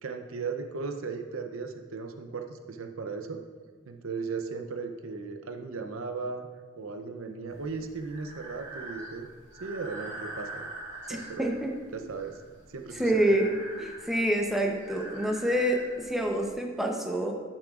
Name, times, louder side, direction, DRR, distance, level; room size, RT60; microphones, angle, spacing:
voice 1, 0.0-3.4 3.9-6.5 6.8-9.3 9.6-10.7 11.1-11.5 11.9-12.4 12.7-13.3, right 4 dB, 80° right, 7 dB, 0.6 m, -36 dB
Breathing, 7.5-16.5, right 1 dB, 35° right, 2.4 m, -44 dB
voice 2, 11.1-11.7 13.0-13.5 13.8-17.3, right 1 dB, ahead, 1 dB, 0.7 m, -27 dB
11.5 x 7.3 x 2.5 m, 1.5 s
head